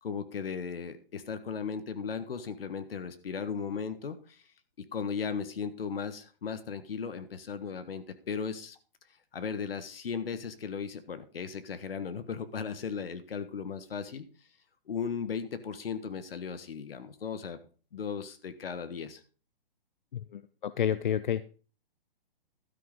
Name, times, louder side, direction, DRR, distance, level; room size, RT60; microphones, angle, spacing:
voice 1, 0.0-4.4 4.8-8.8 9.3-14.2 14.9-17.6 17.9-19.2, left 6 dB, 75° left, 11 dB, 1.5 m, -36 dB
voice 2, 20.1-21.5, left 9 dB, 55° left, 14 dB, 0.5 m, -30 dB
12.5 x 6.3 x 5.2 m, 0.38 s
hypercardioid pair, 175°, 29 cm